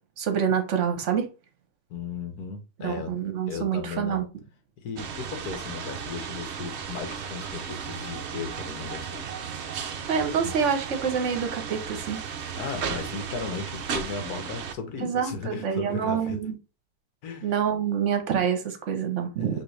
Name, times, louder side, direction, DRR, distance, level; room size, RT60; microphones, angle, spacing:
voice 1, 0.2-1.3 2.8-4.2 10.1-12.2 15.0-16.5 17.4-19.6, right 7 dB, 50° right, 1.0 m, -27 dB
voice 2, 1.9-4.2 4.8-9.2 10.4-10.5 12.5-16.4 17.2-17.5 19.4-19.6, left 5 dB, 60° left, 1.4 m, -36 dB
sound 1, 5.0-14.7, right 7 dB, 70° right, 0.6 m, -35 dB
6.0 x 2.8 x 3.2 m
omnidirectional pair, 1.9 m